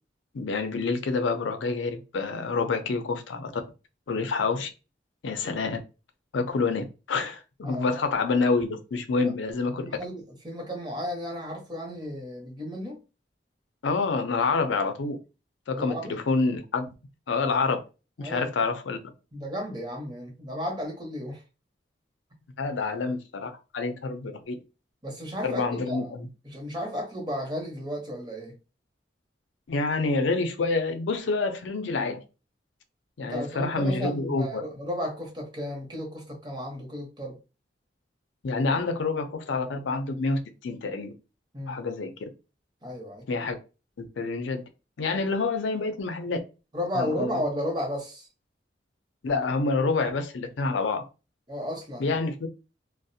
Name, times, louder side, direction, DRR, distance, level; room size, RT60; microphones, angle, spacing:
voice 1, 0.3-3.6 4.1-4.7 5.2-5.8 6.3-9.9 13.8-15.2 15.7-16.9 17.3-17.8 18.2-19.0 22.6-24.5 25.4-26.3 29.7-32.2 33.2-34.6 38.4-41.1 41.7-42.1 43.3-43.6 44.0-44.6 45.0-46.4 46.9-47.4 49.2-51.0 52.0-52.5, left 3 dB, 85° left, 0.5 m, -27 dB
voice 2, 7.6-8.0 9.2-9.3 9.7-13.0 15.8-16.2 18.2-18.5 19.3-21.4 25.0-26.1 26.4-28.6 33.3-37.4 41.5-41.8 42.8-43.2 46.7-48.3 51.5-52.2, equal, 25° right, 0.7 m, -34 dB
2.4 x 2.0 x 2.6 m
head